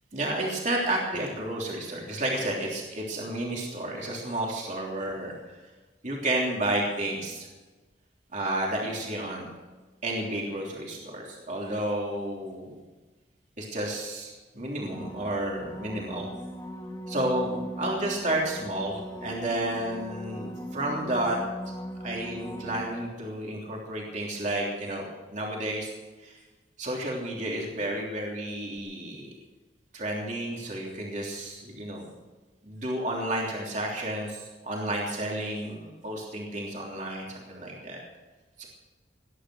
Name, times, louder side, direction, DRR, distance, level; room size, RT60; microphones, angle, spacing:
voice 1, 0.1-5.6 6.0-7.5 8.3-9.5 10.0-12.8 13.6-16.3 17.1-21.4 22.0-25.9 26.2-26.4 26.8-29.3 29.9-32.1 32.6-38.0 38.6-38.7, right 1 dB, 45° right, -2 dB, 3.3 m, -31 dB
sound 1, 14.8-23.4 28.8-28.9, equal, 20° left, 1.3 m, -39 dB
19.0 x 10.5 x 6.3 m, 1.2 s
head